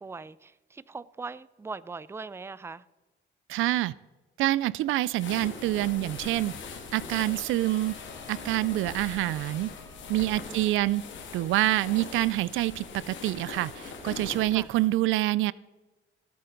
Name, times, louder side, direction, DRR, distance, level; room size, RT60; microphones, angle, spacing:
voice 1, 0.0-2.8 10.4-10.7 14.5-14.7, right 4 dB, 15° right, 0.4 m, -40 dB
voice 2, 3.5-3.9 4.4-6.5 6.9-8.0 8.3-9.7 10.1-11.0 11.3-15.5, right 16 dB, 85° right, 0.4 m, -26 dB
sound 1, 5.1-14.9, left 5 dB, 70° left, 2.1 m, -42 dB
Trumpet, 7.4-12.2, right 1 dB, 50° right, 3.8 m, -55 dB
17.0 x 8.6 x 3.9 m
cardioid pair, 90°, 20 cm